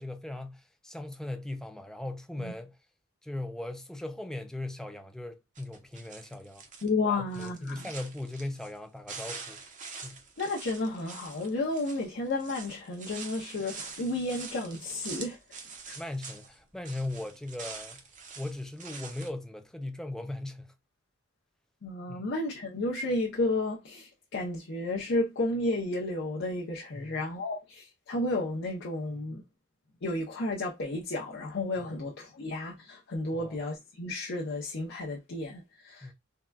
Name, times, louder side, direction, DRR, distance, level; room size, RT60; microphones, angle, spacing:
voice 1, 0.0-2.8 3.2-6.7 7.1-9.6 10.0-10.2 16.0-18.0 18.4-20.7 22.1-22.3 26.9-27.2 29.3-29.4 31.8-31.9 33.3-33.6 36.0-36.1, left 1 dB, 5° left, 0.4 m, -39 dB
sound 1, 5.5-6.9 7.3-8.8 9.1-16.6 16.8-19.3, right 5 dB, 40° right, 0.7 m, -45 dB
voice 2, 6.8-7.9 10.4-15.6 15.9-16.0 21.8-29.4 30.0-36.1, left 2 dB, 60° left, 0.6 m, -32 dB
3.7 x 2.2 x 2.2 m
head